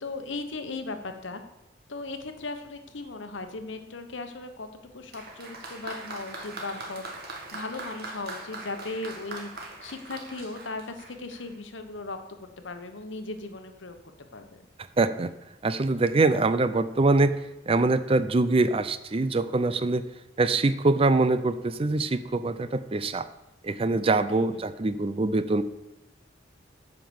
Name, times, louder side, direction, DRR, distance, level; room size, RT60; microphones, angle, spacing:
voice 1, 0.0-1.4 1.9-7.1 7.5-14.6 24.3-24.7, left 3 dB, 75° left, 7 dB, 1.2 m, -37 dB
Applause, 5.1-11.6, right 2 dB, 55° right, 2.1 m, -41 dB
voice 2, 15.0-15.3 15.6-17.4 17.7-20.0 20.4-23.3 23.6-25.6, right 3 dB, 30° right, 13 dB, 0.5 m, -24 dB
9.6 x 5.9 x 7.1 m, 0.94 s
head